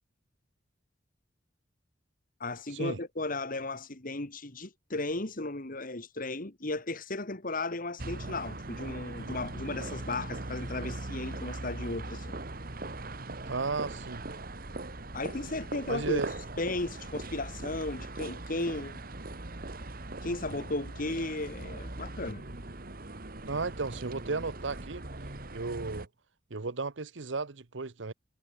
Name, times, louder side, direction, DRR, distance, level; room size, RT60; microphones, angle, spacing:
voice 1, 2.4-12.4 15.1-16.2 16.6-19.0 20.2-22.4, left 2 dB, 50° left, 2.2 m, -35 dB
sound 1, 8.0-26.1, right 2 dB, 50° right, 2.1 m, -40 dB
voice 2, 13.5-14.2 15.9-16.3 23.5-25.0 25.5-26.1 26.5-28.1, right 3 dB, 80° right, 1.0 m, -34 dB
head